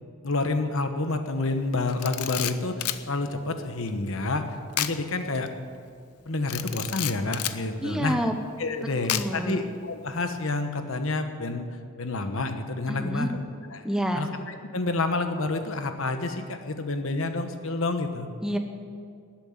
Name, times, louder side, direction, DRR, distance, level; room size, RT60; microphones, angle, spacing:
voice 1, 0.2-5.5 6.3-8.1 8.6-13.4 13.7-13.8 14.1-18.3, left 2 dB, 60° left, 7 dB, 1.2 m, -29 dB
Camera, 1.9-3.0 4.7-5.0 5.3-5.5 6.5-7.6 9.1-9.5, left 12 dB, 85° left, 0.7 m, -30 dB
voice 2, 7.8-8.4 9.1-9.6 12.9-13.3 13.8-14.3 18.4-18.6, equal, 5° right, 5 dB, 0.9 m, -28 dB
13.0 x 9.0 x 9.5 m, 2.2 s
head